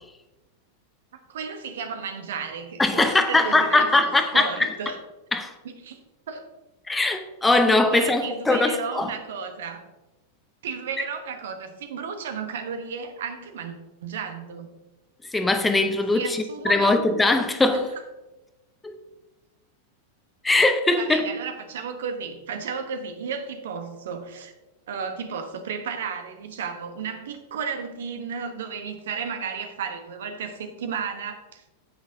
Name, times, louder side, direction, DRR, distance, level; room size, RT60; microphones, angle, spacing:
voice 1, 1.3-5.0 5.6-6.0 6.3-6.4 7.9-9.8 10.6-13.8 14.0-14.7 16.1-17.0 17.7-17.8 21.0-24.5 24.9-31.6, right 6 dB, 60° right, 7 dB, 1.0 m, -33 dB
voice 2, 2.8-4.7 5.3-5.5 6.9-9.1 15.3-17.9 18.8-19.0 20.4-21.3, left 2 dB, 10° left, 7 dB, 0.7 m, -21 dB
9.5 x 8.5 x 2.7 m, 1.0 s
figure-of-eight pair, 90°, 0 cm